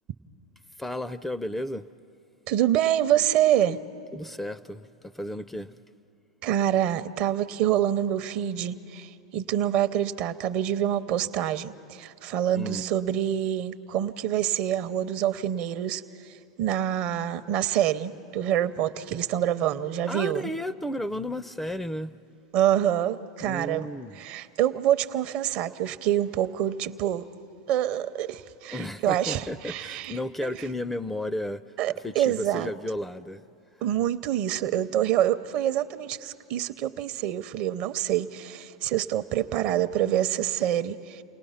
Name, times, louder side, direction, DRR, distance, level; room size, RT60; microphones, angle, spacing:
voice 1, 0.8-1.9 4.1-5.8 12.6-12.8 20.1-22.2 23.4-24.2 28.7-33.4, left 1 dB, 5° left, 14 dB, 0.5 m, -33 dB
voice 2, 2.5-3.8 6.4-20.5 22.5-23.9 24.1-27.3 27.7-30.5 31.8-32.7 33.8-41.2, right 11 dB, 50° right, 12 dB, 0.7 m, -26 dB
29.0 x 18.5 x 5.7 m, 2.7 s
hypercardioid pair, 95°, 3 cm